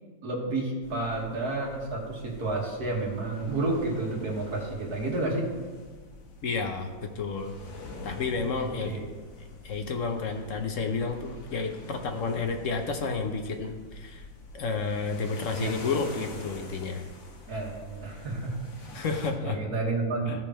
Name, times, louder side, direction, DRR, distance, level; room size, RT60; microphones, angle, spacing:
voice 1, 0.2-5.5 8.6-9.1 15.5-15.8 17.5-18.9 19.4-20.5, right 2 dB, 55° right, -1 dB, 2.2 m, -31 dB
sound 1, 0.8-19.3, left 3 dB, 85° left, 2.0 m, -46 dB
voice 2, 6.4-7.5 8.0-9.0 9.6-14.3 14.5-17.0 18.9-19.6 20.3-20.4, left 4 dB, 55° left, 5 dB, 0.9 m, -31 dB
14.5 x 5.1 x 4.4 m, 1.3 s
omnidirectional pair, 2.1 m